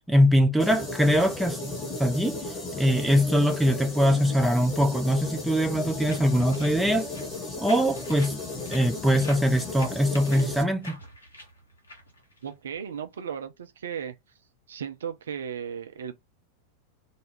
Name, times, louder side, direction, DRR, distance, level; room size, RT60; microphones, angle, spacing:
voice 1, 0.1-1.6 2.0-2.4 2.8-7.1 7.6-8.4 8.7-11.0, equal, ahead, 0.5 m, -22 dB
sound 1, 0.6-10.6, left 2 dB, 20° left, 1.0 m, -35 dB
sound 2, 6.0-13.0, left 1 dB, 75° left, 0.8 m, -46 dB
voice 2, 12.4-14.2 14.7-16.1, right 8 dB, 65° right, 0.4 m, -35 dB
2.3 x 2.0 x 3.1 m
figure-of-eight pair, 90°, 0 cm